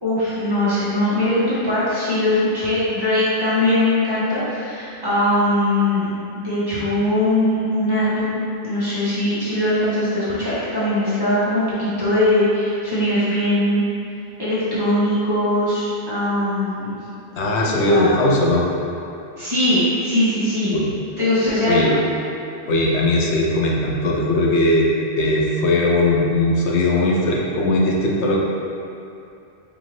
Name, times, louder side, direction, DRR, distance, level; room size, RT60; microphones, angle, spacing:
voice 1, 0.0-6.1 6.3-13.8 14.4-17.0 17.8-18.1 19.4-20.7 21.2-22.0, left 1 dB, 20° right, -13 dB, 1.4 m, -20 dB
voice 2, 17.4-18.6 20.7-20.9 21.7-21.9 22.7-24.9 25.2-28.4, left 2 dB, 85° left, -2 dB, 0.9 m, -19 dB
4.9 x 2.8 x 3.2 m, 2.7 s
omnidirectional pair, 1.1 m